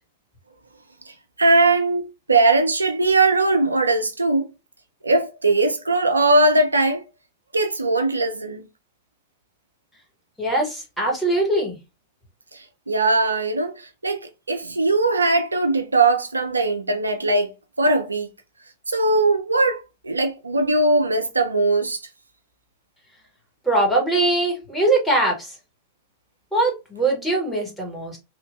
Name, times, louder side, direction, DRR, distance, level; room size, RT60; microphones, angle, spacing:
voice 1, 1.4-4.5 5.0-7.0 7.5-8.6 12.9-14.2 14.5-18.3 18.9-22.0, right 2 dB, 80° right, 0.3 m, -20 dB
voice 2, 10.4-11.8 23.6-25.5 26.5-28.2, right 2 dB, 5° left, 1.2 m, -21 dB
3.0 x 2.2 x 2.4 m
figure-of-eight pair, 90°, 0 cm